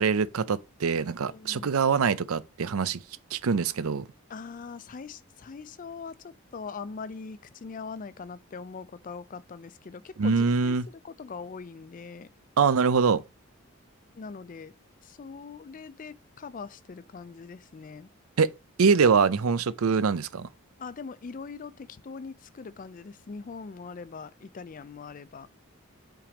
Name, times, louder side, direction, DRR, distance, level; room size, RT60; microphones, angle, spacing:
voice 1, 0.0-3.0 3.3-4.0 10.2-10.9 12.6-13.2 18.4-18.5 18.8-20.5, right 5 dB, 75° right, 0.5 m, -24 dB
voice 2, 1.2-1.7 4.3-12.3 14.2-14.8 15.0-18.1 20.8-25.5, left 5 dB, 35° left, 0.3 m, -42 dB
5.7 x 3.4 x 5.0 m
head